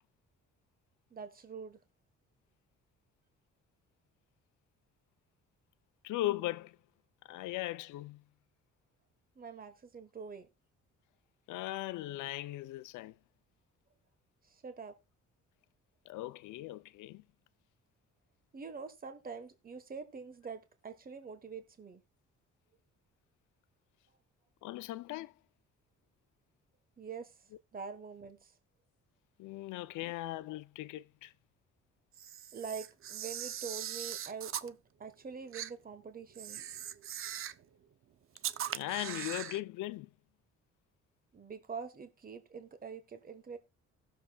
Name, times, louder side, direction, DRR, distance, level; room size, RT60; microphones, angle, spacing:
voice 1, 1.1-1.8 9.3-10.5 14.4-15.0 18.5-22.0 27.0-28.5 32.5-36.6 41.3-43.6, right 5 dB, 30° right, 1.3 m, -45 dB
voice 2, 6.0-6.8 7.2-8.2 11.5-13.2 16.1-17.3 24.6-25.3 29.4-31.3 38.7-40.1, left 16 dB, 85° left, 0.5 m, -38 dB
Camera, 32.1-34.7 35.5-35.7 36.3-37.6 38.4-39.6, right 10 dB, 45° right, 0.5 m, -40 dB
18.0 x 6.7 x 2.3 m
cardioid pair, 90°, 30 cm